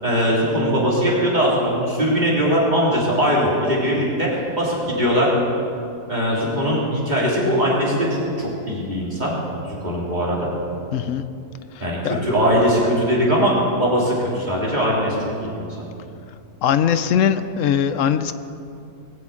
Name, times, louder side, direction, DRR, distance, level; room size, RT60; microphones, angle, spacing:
voice 1, 0.0-4.3 4.6-5.4 6.1-9.4 9.6-10.5 11.8-15.2 15.4-15.7, equal, 25° right, -5 dB, 3.6 m, -20 dB
voice 2, 10.9-11.2 11.8-12.2 16.6-18.3, left 8 dB, 65° left, 11 dB, 0.9 m, -20 dB
20.0 x 7.6 x 8.4 m, 2.6 s
omnidirectional pair, 1.7 m